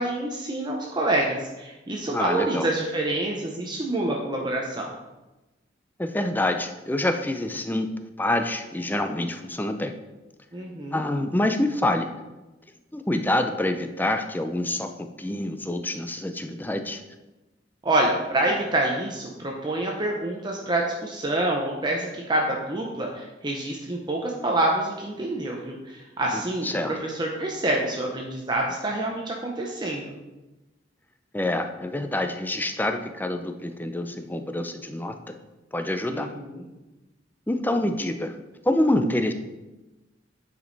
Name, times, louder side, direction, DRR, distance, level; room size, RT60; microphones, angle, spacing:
voice 1, 0.0-4.9 10.5-11.0 17.8-30.0 36.1-36.6, right 1 dB, 25° right, -1 dB, 0.8 m, -27 dB
voice 2, 2.1-2.7 6.0-7.9 8.2-10.0 10.9-12.1 12.9-17.0 26.3-27.0 31.3-35.4 35.7-36.3 37.5-38.4 38.6-39.3, left 1 dB, 10° left, 7 dB, 0.5 m, -26 dB
9.0 x 5.2 x 4.0 m, 1.1 s
head